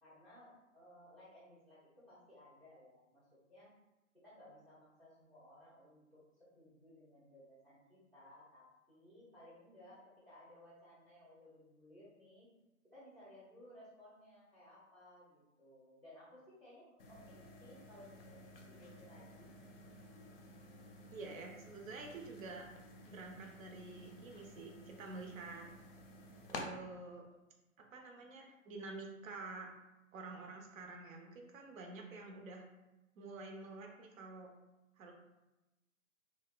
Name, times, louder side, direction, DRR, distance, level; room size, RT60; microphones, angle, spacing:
voice 1, 0.0-3.7 4.2-6.2 6.5-12.5 12.9-19.5, left 1 dB, 10° right, -10 dB, 0.4 m, -59 dB
sound 1, 17.0-26.6, left 2 dB, 45° left, 0.4 m, -53 dB
voice 2, 21.1-22.7 23.1-25.7 26.5-27.2 27.9-29.7 30.1-32.6 33.2-34.5 35.0-35.1, right 3 dB, 70° right, 1 dB, 0.6 m, -48 dB
2.6 x 2.0 x 2.3 m, 0.99 s
hypercardioid pair, 130°, 41 cm